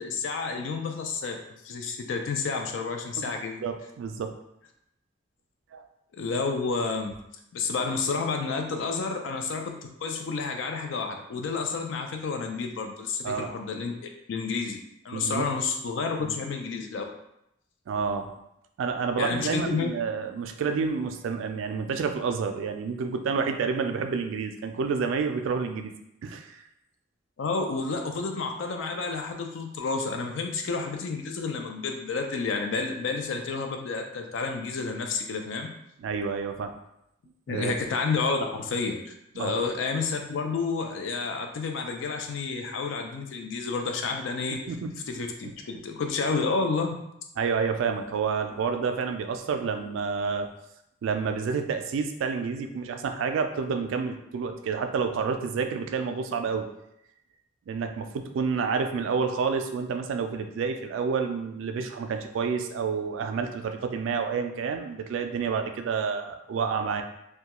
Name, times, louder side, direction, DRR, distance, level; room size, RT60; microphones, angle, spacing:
voice 1, 0.0-1.4 1.6-3.6 6.1-7.1 7.5-14.8 15.0-17.0 19.2-19.9 27.4-35.7 37.5-44.6 45.1-47.0, left 4 dB, 70° left, 4 dB, 0.4 m, -30 dB
voice 2, 3.6-4.3 5.7-5.8 13.2-13.5 15.1-15.5 16.2-16.4 17.9-18.3 18.8-25.9 26.2-26.6 36.0-36.7 37.5-37.8 39.4-39.6 44.7-44.9 45.4-45.5 47.4-50.5 51.0-56.7 57.7-67.0, right 5 dB, 75° right, 6 dB, 0.3 m, -29 dB
2.2 x 2.2 x 2.9 m, 0.80 s
head